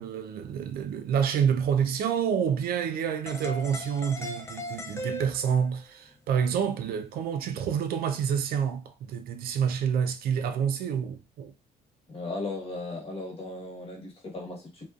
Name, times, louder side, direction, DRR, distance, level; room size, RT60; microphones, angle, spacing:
voice 1, 0.0-11.5, right 7 dB, 65° right, 0.4 m, -28 dB
sound 1, 3.3-5.8, left 1 dB, 15° left, 0.4 m, -38 dB
voice 2, 12.1-14.9, left 2 dB, 35° left, 1.2 m, -36 dB
2.5 x 2.3 x 2.3 m
cardioid pair, 110°, 17 cm